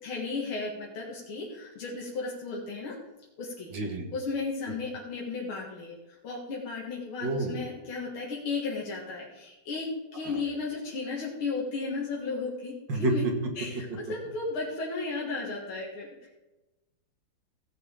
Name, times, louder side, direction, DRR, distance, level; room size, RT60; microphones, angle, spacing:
voice 1, 0.0-3.0 3.4-3.7 4.1-13.3 13.6-16.3, left 4 dB, 75° left, -3 dB, 2.6 m, -34 dB
voice 2, 3.7-4.1 7.2-7.6 10.2-10.4 12.9-13.2, right 2 dB, 60° right, 2 dB, 2.2 m, -29 dB
16.0 x 8.3 x 3.8 m, 1.0 s
omnidirectional pair, 2.3 m